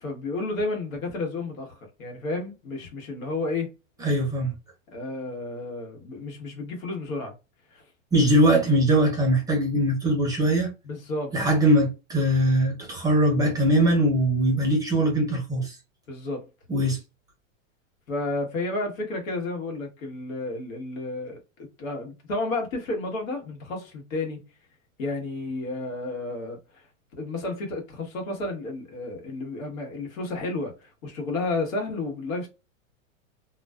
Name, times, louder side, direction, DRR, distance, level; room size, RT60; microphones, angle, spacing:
voice 1, 0.0-3.7 4.9-7.3 7.7-7.8 10.8-11.4 16.1-16.5 18.1-24.5 25.0-26.6 27.2-32.5, left 2 dB, 80° left, 1.2 m, -31 dB
voice 2, 4.0-4.5 8.1-10.7 11.3-15.8 16.7-17.0, right 1 dB, 10° right, 0.6 m, -21 dB
2.3 x 2.3 x 2.3 m
hypercardioid pair, 140°, 40 cm